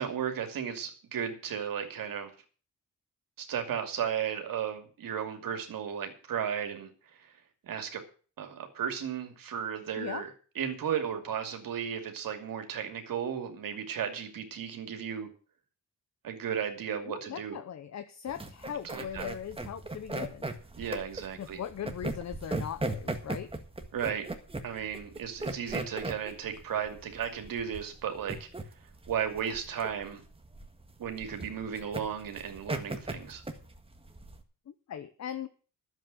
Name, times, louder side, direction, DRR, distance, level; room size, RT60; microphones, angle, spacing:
voice 1, 0.0-2.3 3.4-6.9 7.2-7.3 7.6-8.0 8.4-15.3 16.2-17.6 18.8-19.3 20.8-21.6 23.9-24.3 24.6-28.5 29.1-30.2 31.0-33.4, right 8 dB, 80° right, 5 dB, 2.6 m, -34 dB
voice 2, 17.1-20.5 21.4-23.5 34.7-35.5, left 9 dB, 55° left, 11 dB, 0.9 m, -39 dB
sound 1, 18.3-34.4, right 2 dB, 15° right, 1.7 m, -37 dB
11.0 x 7.8 x 7.8 m, 0.40 s
cardioid pair, 95°, 34 cm